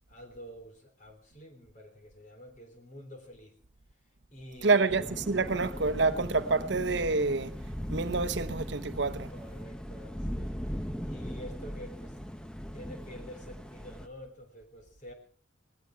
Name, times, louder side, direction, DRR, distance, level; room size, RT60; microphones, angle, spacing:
voice 1, 0.1-3.6 4.3-5.1 9.3-12.2 12.7-15.1, equal, 40° left, 3.4 m, -48 dB
voice 2, 4.6-7.6 7.9-9.3, right 3 dB, 65° right, 0.8 m, -27 dB
sound 1, 4.9-14.1, equal, 5° left, 0.7 m, -39 dB
18.5 x 16.0 x 4.6 m
head